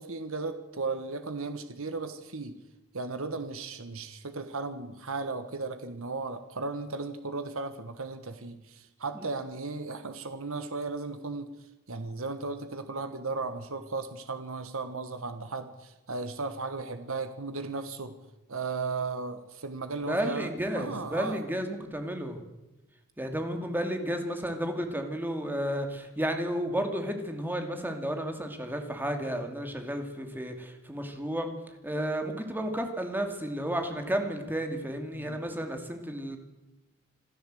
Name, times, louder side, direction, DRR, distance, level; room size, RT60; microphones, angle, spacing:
voice 1, 0.0-2.6 2.9-11.5 11.9-18.2 18.5-21.4 35.1-35.4, right 3 dB, 70° right, 9 dB, 1.4 m, -35 dB
voice 2, 20.1-22.4 23.2-31.5 31.8-36.4, right 1 dB, 10° right, 5 dB, 2.4 m, -32 dB
27.0 x 12.5 x 7.8 m, 1.0 s
head